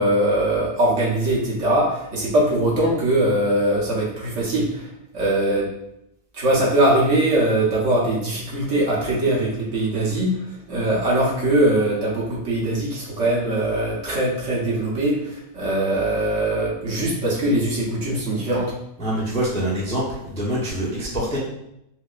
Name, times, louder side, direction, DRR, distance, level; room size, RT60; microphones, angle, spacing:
voice 1, 0.0-5.7 6.3-10.4 10.7-18.7, right 1 dB, 55° right, -5 dB, 1.1 m, -21 dB
voice 2, 19.0-21.4, right 1 dB, 5° left, -6 dB, 0.5 m, -25 dB
4.6 x 2.1 x 2.4 m, 0.79 s
omnidirectional pair, 1.7 m